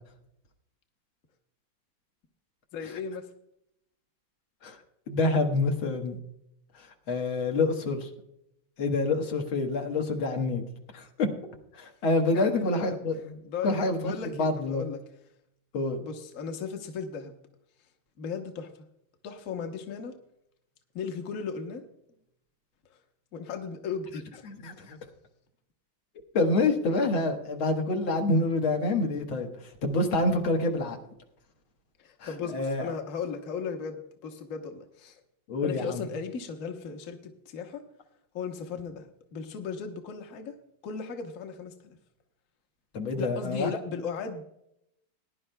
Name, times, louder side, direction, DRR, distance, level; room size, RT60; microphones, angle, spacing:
voice 1, 2.7-3.3 12.3-13.0 13.4-15.0 16.0-17.3 18.2-18.7 19.2-20.1 20.9-21.8 23.3-24.4 32.0-35.2 35.6-37.8 38.3-40.6 40.8-42.0 43.2-44.4, left 6 dB, 45° left, 4 dB, 1.3 m, -36 dB
voice 2, 5.1-6.2 6.8-8.1 8.8-10.6 10.9-11.3 11.7-13.4 13.6-14.8 15.7-16.0 24.5-25.0 26.3-29.5 29.8-31.0 32.2-32.8 35.5-36.1 42.9-43.7, left 2 dB, 80° left, 3 dB, 2.2 m, -27 dB
20.0 x 11.0 x 2.2 m, 0.77 s
omnidirectional pair, 2.2 m